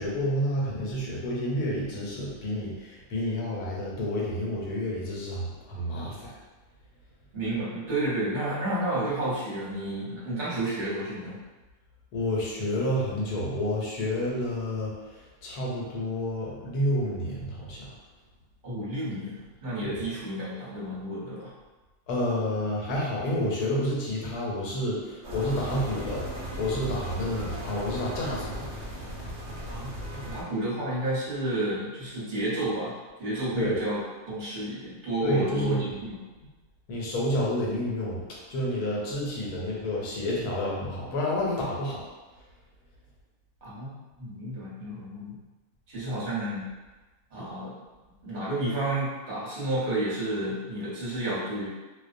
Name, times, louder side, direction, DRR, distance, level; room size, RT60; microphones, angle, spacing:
voice 1, 0.0-6.3 12.1-18.0 19.9-20.0 22.1-26.2 26.6-28.7 33.6-33.8 35.2-35.9 36.9-38.2 38.5-42.0, left 1 dB, 80° left, -4 dB, 1.2 m, -29 dB
voice 2, 7.3-11.4 18.6-21.5 29.7-32.9 33.2-34.0 34.3-36.2 43.6-43.9 44.2-45.4 45.9-46.7 47.3-47.7 48.2-51.7, right 1 dB, 40° right, -9 dB, 0.9 m, -31 dB
sound 1, 25.2-30.4, equal, 65° right, 0.6 m, -37 dB
2.5 x 2.1 x 2.5 m, 1.2 s
omnidirectional pair, 1.6 m